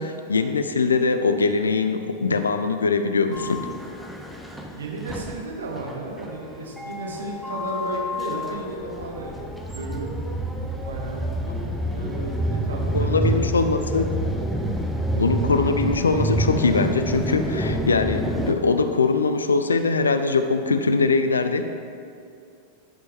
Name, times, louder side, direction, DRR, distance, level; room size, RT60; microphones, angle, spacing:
voice 1, 0.0-3.7 12.9-14.0 15.1-21.7, left 4 dB, 75° left, 8 dB, 0.4 m, -22 dB
sound 1, 3.3-18.5, right 1 dB, ahead, 0.7 m, -28 dB
voice 2, 4.8-9.5 9.7-10.2 10.6-11.3 11.9-13.7, right 2 dB, 70° right, -1 dB, 1.3 m, -34 dB
11.0 x 5.4 x 3.4 m, 2.5 s
figure-of-eight pair, 90°, 0 cm